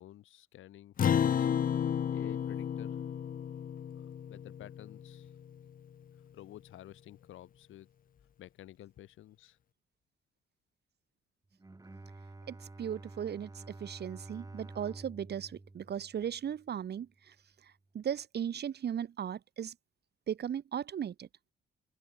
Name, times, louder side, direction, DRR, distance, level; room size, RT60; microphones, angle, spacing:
voice 1, 0.0-1.5 2.1-3.0 3.9-5.3 6.3-7.9 8.4-9.6, left 13 dB, 80° left, 4.6 m, -52 dB
Acoustic guitar, 1.0-5.7, left 8 dB, 45° left, 0.7 m, -32 dB
Bowed string instrument, 11.5-16.8, right 2 dB, 15° right, 5.1 m, -50 dB
voice 2, 12.5-17.1 17.9-19.7 20.3-21.3, right 9 dB, 55° right, 2.0 m, -37 dB
open air
cardioid pair, 90°, 20 cm